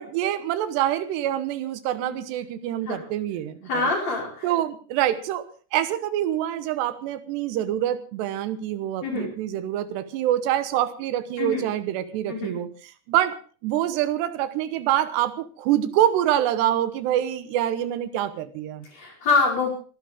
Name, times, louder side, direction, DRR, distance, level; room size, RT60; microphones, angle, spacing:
voice 1, 0.0-3.9 4.4-18.9, right 12 dB, 75° right, 12 dB, 3.2 m, -26 dB
voice 2, 3.7-4.5 9.0-9.3 11.4-11.7 12.3-12.6 18.9-19.7, left 4 dB, 35° left, 0 dB, 6.1 m, -25 dB
26.0 x 12.5 x 3.6 m, 0.37 s
omnidirectional pair, 5.2 m